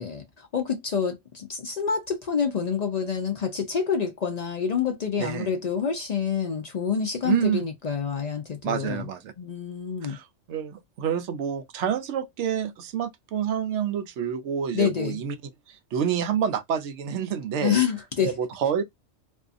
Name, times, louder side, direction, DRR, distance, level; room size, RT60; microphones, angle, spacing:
voice 1, 0.0-9.1 9.4-10.2 14.7-15.2 17.6-18.3, left 6 dB, 75° left, 0.3 m, -27 dB
voice 2, 5.2-5.5 7.2-7.6 8.6-9.3 10.0-15.4 15.7-17.8 18.2-18.8, right 8 dB, 70° right, 0.9 m, -28 dB
2.6 x 2.4 x 2.5 m
omnidirectional pair, 1.3 m